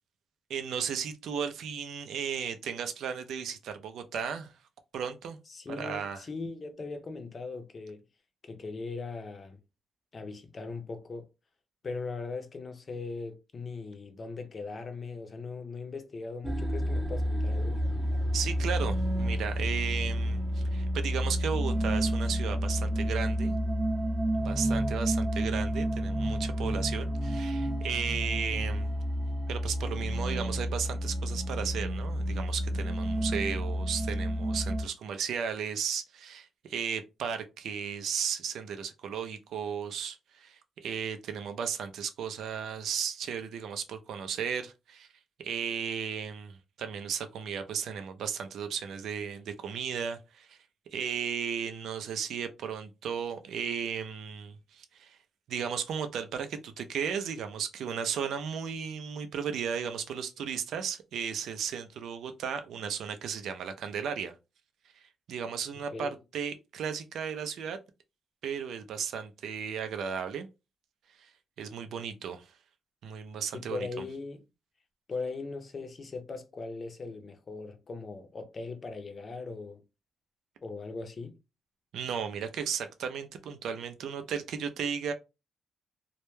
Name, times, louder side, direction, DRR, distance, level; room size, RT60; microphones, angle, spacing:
voice 1, 0.5-4.5 4.9-5.4 5.7-6.2 18.3-23.6 24.3-28.9 29.5-45.1 45.4-50.6 50.9-55.2 55.5-64.3 65.3-67.8 68.4-70.5 71.2-71.3 71.6-72.5 73.0-73.9 81.9-85.1, right 7 dB, 80° right, 0.4 m, -35 dB
voice 2, 5.5-8.0 8.4-9.6 10.1-11.3 11.8-17.8 65.9-66.2 73.5-74.4 75.1-79.8 80.6-81.4, left 4 dB, 40° left, 0.5 m, -39 dB
sound 1, 16.4-34.8, equal, 25° right, 0.6 m, -30 dB
2.2 x 2.1 x 3.0 m
cardioid pair, 100°, 0 cm